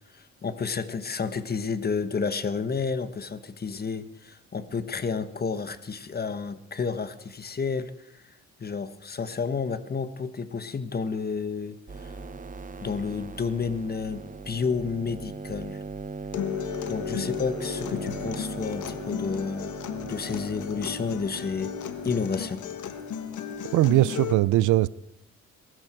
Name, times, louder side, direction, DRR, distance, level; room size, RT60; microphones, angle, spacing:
voice 1, 0.1-12.1 12.8-15.8 16.9-21.7 22.0-22.6, left 5 dB, 30° left, 1.3 m, -31 dB
sound 1, 11.9-24.3, right 3 dB, 25° right, 1.1 m, -40 dB
Acoustic guitar, 16.3-24.3, left 8 dB, 75° left, 1.5 m, -35 dB
voice 2, 23.7-24.9, right 16 dB, 85° right, 0.6 m, -20 dB
22.0 x 13.0 x 4.6 m
cardioid pair, 90°, 30 cm